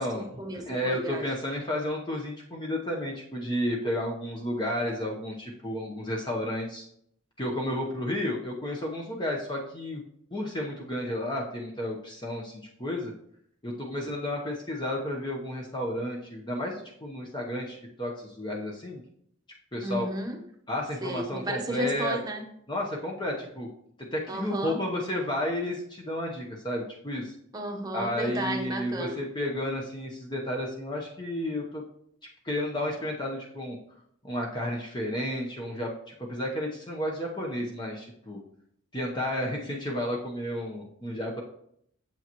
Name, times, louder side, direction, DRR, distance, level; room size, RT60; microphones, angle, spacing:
voice 1, 0.0-1.3 19.8-20.4 21.0-22.4 24.3-24.8 27.5-29.2, right 1 dB, 20° right, 3 dB, 0.9 m, -33 dB
voice 2, 0.7-6.9 7.4-10.0 10.3-13.1 13.6-19.0 19.7-20.1 20.7-22.2 22.7-23.7 24.1-27.3 27.9-31.8 32.4-33.8 34.2-35.9 36.2-38.4 38.9-41.4, left 1 dB, 20° left, -1 dB, 0.9 m, -32 dB
8.6 x 7.3 x 3.0 m, 0.70 s
head